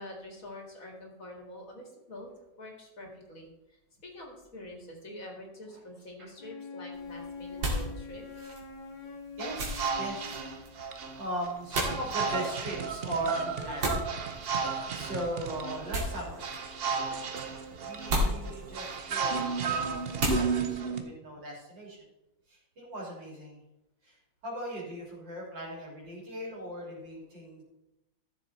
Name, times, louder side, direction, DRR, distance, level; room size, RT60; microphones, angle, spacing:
voice 1, 0.0-2.3 2.6-8.5, left 1 dB, 45° left, 1 dB, 2.3 m, -46 dB
Wind instrument woodwind instrument, 6.4-10.8, left 4 dB, 90° left, 2.2 m, -44 dB
sound 1, 6.9-20.7, right 1 dB, 90° right, 3.0 m, -37 dB
sound 2, 9.4-21.0, right 5 dB, 55° right, 0.6 m, -33 dB
voice 2, 9.4-10.3 11.2-14.1 14.4-16.5 17.4-22.0 22.5-23.6 24.0-24.2 24.4-27.6, right 1 dB, 70° right, -3 dB, 3.7 m, -39 dB
13.0 x 7.0 x 4.2 m, 0.92 s
omnidirectional pair, 2.0 m